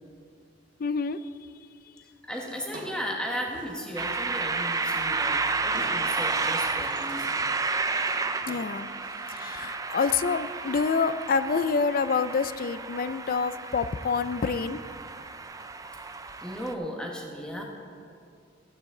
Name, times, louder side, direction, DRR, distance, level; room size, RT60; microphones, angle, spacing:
voice 1, 0.8-1.2 8.5-8.9 9.3-14.8, left 5 dB, 50° left, 14 dB, 0.4 m, -27 dB
voice 2, 2.3-7.3 16.4-17.6, equal, 5° left, -1 dB, 1.4 m, -35 dB
Drawer open or close, 2.3-4.1 4.9-6.2 6.6-7.5 7.8-8.9, right 1 dB, 45° right, 1.6 m, -47 dB
sound 1, 4.0-16.7, right 4 dB, 20° right, 0.4 m, -31 dB
14.5 x 9.1 x 3.8 m, 2.4 s
head